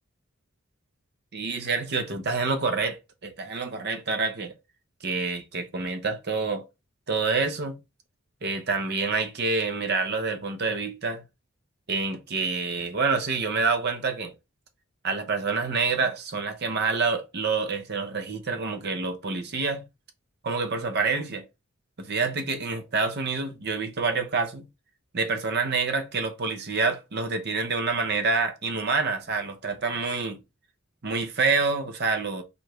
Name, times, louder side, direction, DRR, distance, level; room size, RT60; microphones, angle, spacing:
voice 1, 1.3-4.5 5.0-6.6 7.1-7.8 8.4-11.2 11.9-14.3 15.0-19.8 20.4-21.4 22.0-24.7 25.1-30.4 31.0-32.4, right 4 dB, 55° right, 0.8 m, -27 dB
4.7 x 2.5 x 3.2 m
head